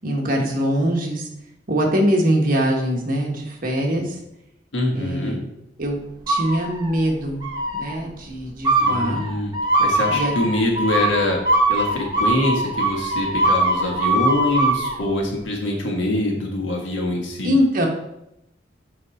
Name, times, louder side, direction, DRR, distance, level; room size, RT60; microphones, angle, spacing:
voice 1, 0.0-1.3 1.7-4.2 4.9-5.4 5.8-6.0 6.3-7.4 7.8-9.2 10.1-10.3 17.4-17.9, equal, 50° right, 0 dB, 1.3 m, -22 dB
voice 2, 4.7-5.4 8.8-9.5 9.8-11.4 11.7-17.5, left 1 dB, 85° left, 0 dB, 1.7 m, -24 dB
sound 1, 6.3-7.0 7.4-8.0 8.6-15.0, right 2 dB, 25° right, 1.4 m, -21 dB
6.2 x 5.1 x 4.2 m, 0.83 s
head